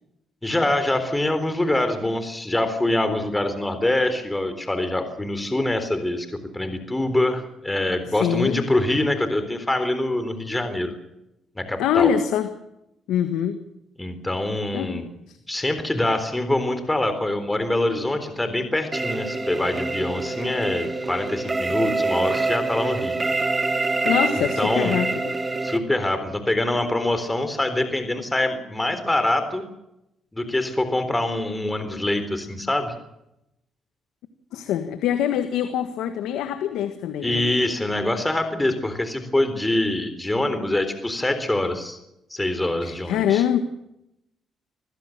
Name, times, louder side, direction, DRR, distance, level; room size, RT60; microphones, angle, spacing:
voice 1, 0.4-10.9 11.6-12.1 14.0-15.1 15.5-23.2 24.6-24.9 25.6-29.6 30.3-33.0 37.2-42.0 42.3-43.4, left 1 dB, 15° left, 9 dB, 3.8 m, -24 dB
voice 2, 8.1-8.6 11.8-12.5 13.1-13.6 14.7-15.4 24.0-25.3 34.5-37.4 42.8-43.6, left 9 dB, 90° left, 9 dB, 1.6 m, -24 dB
sound 1, 18.9-25.8, right 3 dB, 20° right, 2.3 m, -26 dB
25.5 x 16.0 x 7.4 m, 0.85 s
cardioid pair, 90°, 0 cm